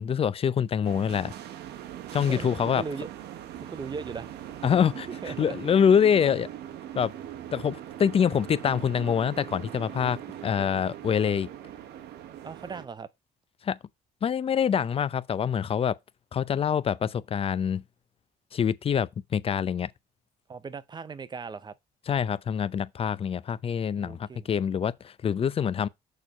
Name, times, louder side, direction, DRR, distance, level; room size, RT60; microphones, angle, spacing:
voice 1, 0.0-1.3 2.1-2.8 4.6-6.5 7.0-7.1 7.5-11.5 13.6-13.8 14.2-16.0 16.3-17.8 18.5-19.9 22.1-25.9, left 7 dB, 35° left, 0.5 m, -25 dB
sound 1, 0.8-12.9, right 11 dB, 75° right, 1.1 m, -41 dB
voice 2, 2.2-3.1 3.5-4.4 5.2-5.6 12.4-13.1 20.5-21.7 24.0-24.6, right 5 dB, 25° right, 0.7 m, -38 dB
6.6 x 4.3 x 5.3 m
cardioid pair, 110°, 17 cm